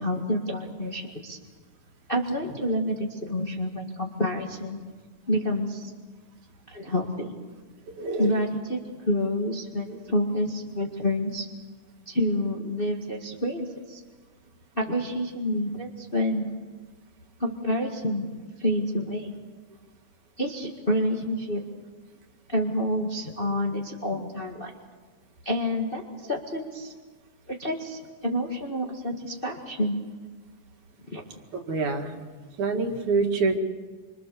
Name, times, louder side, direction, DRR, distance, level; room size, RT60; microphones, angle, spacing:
voice 1, 0.0-1.4 2.1-4.8 5.3-5.9 6.7-7.3 8.2-11.5 12.0-14.0 14.7-16.5 17.4-18.3 18.6-19.3 20.4-21.6 22.5-24.7 25.4-26.0 26.3-26.9 27.5-29.9 31.1-31.2, equal, 25° left, 1 dB, 1.4 m, -28 dB
voice 2, 8.0-8.3 9.9-10.0 23.3-23.5 31.7-32.2 32.6-33.6, right 3 dB, 70° right, 3 dB, 3.3 m, -26 dB
26.5 x 26.0 x 6.9 m, 1.4 s
omnidirectional pair, 3.7 m